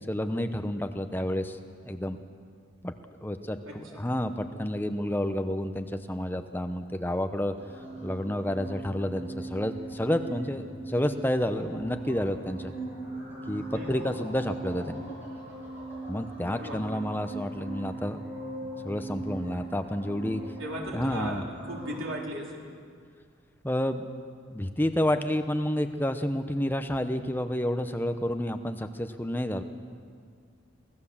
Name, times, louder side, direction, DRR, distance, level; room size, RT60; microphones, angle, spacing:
voice 1, 0.1-1.6 1.8-2.2 2.8-2.9 3.2-7.5 8.0-12.7 13.5-15.1 16.1-18.2 18.8-20.4 20.9-21.4 23.6-24.1 24.5-29.6, left 1 dB, 10° left, 7 dB, 0.8 m, -30 dB
voice 2, 3.7-4.0 13.7-14.1 16.6-17.0 20.6-22.7, equal, 90° right, -1 dB, 3.9 m, -38 dB
sound 1, 7.6-22.0, right 2 dB, 10° right, 7.3 m, -40 dB
24.5 x 17.0 x 7.2 m, 2.1 s
head